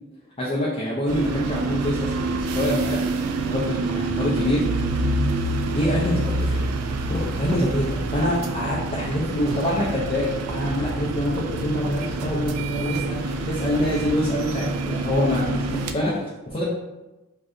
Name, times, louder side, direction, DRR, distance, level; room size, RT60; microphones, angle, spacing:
voice 1, 0.4-2.1 2.4-4.6 5.7-6.7 7.1-16.6, left 1 dB, 25° left, -7 dB, 0.5 m, -25 dB
sound 1, 1.1-15.9, right 2 dB, 85° right, 0.3 m, -27 dB
2.6 x 2.4 x 3.3 m, 1.0 s
head